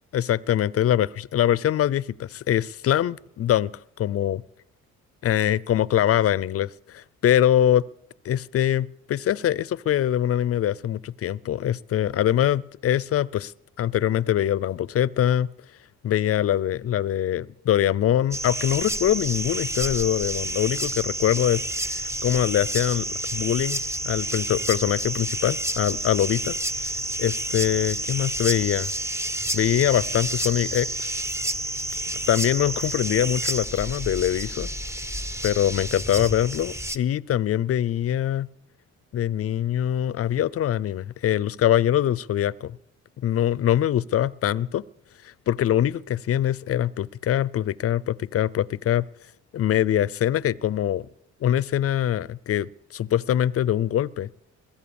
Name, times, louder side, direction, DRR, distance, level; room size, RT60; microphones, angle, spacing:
voice 1, 0.1-3.7 4.0-4.4 5.2-7.8 8.2-13.5 13.8-15.5 16.0-26.6 27.2-28.9 29.5-31.2 32.3-34.7 35.4-38.5 39.1-42.8 43.2-44.8 45.2-49.1 49.5-51.1 51.4-54.3, left 11 dB, 50° left, 21 dB, 0.5 m, -23 dB
sound 1, 18.3-37.0, right 1 dB, 10° right, 0.8 m, -29 dB
21.5 x 8.9 x 7.1 m, 0.80 s
cardioid pair, 90°, 30 cm